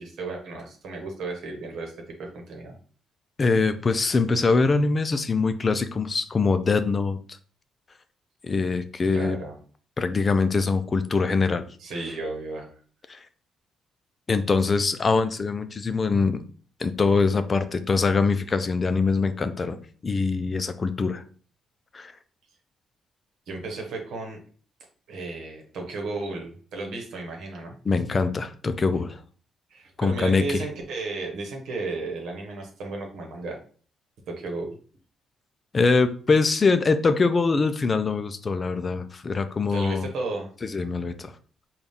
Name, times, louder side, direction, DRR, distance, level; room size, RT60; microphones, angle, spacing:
voice 1, 0.0-1.9 2.2-2.7 9.1-9.6 11.8-12.7 23.5-24.4 25.1-27.8 29.7-33.6 34.3-34.7 39.7-40.5, right 3 dB, 75° right, 1 dB, 1.0 m, -34 dB
voice 2, 3.4-7.2 8.4-9.4 10.0-11.6 13.1-13.2 14.3-16.4 16.8-19.8 20.0-21.2 21.9-22.1 27.9-29.2 30.0-30.6 35.7-40.0 40.6-41.3, left 4 dB, 35° left, 11 dB, 0.4 m, -23 dB
4.0 x 2.3 x 3.4 m, 0.42 s
cardioid pair, 90°, 0 cm